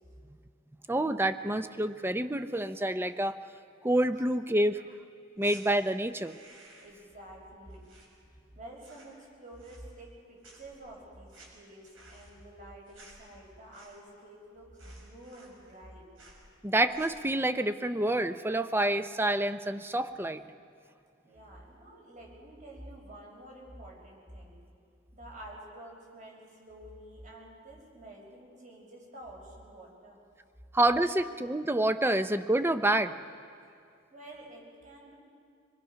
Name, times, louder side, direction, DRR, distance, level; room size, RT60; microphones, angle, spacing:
voice 1, 0.9-3.4 3.8-4.8 5.4-6.4 16.6-20.4 30.7-33.1, right 1 dB, 10° right, 10 dB, 0.6 m, -28 dB
sound 1, 5.4-5.6 6.1-7.0 7.3-8.5 8.7-9.2 9.5-10.2 10.4-14.2 14.5-14.6 14.8-15.9 16.1-16.4 16.8-17.3, right 2 dB, 80° right, 5.8 m, -56 dB
voice 2, 6.8-7.8 8.5-16.1 21.2-24.6 25.1-30.2 34.1-35.2, right 1 dB, 40° right, -2 dB, 5.8 m, -49 dB
26.5 x 21.5 x 5.8 m, 2.4 s
head